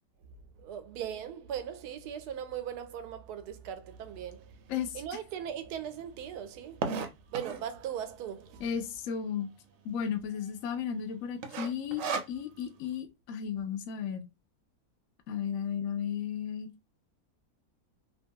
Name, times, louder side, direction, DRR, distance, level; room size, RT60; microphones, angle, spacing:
voice 1, 0.6-4.5 4.9-6.9 7.3-8.6, right 9 dB, 90° right, 1.1 m, -39 dB
sound 1, 4.3-4.4 5.0-5.1 5.3-5.4 5.6-7.8 8.4-8.8 9.2-9.3 9.5-9.6 10.1-10.5 10.8-11.0 11.4-12.7, right 5 dB, 70° right, 0.9 m, -35 dB
voice 2, 4.7-5.0 8.6-9.5 9.8-14.3 15.3-16.7, left 8 dB, 70° left, 0.9 m, -34 dB
2.9 x 2.2 x 2.6 m
omnidirectional pair, 1.6 m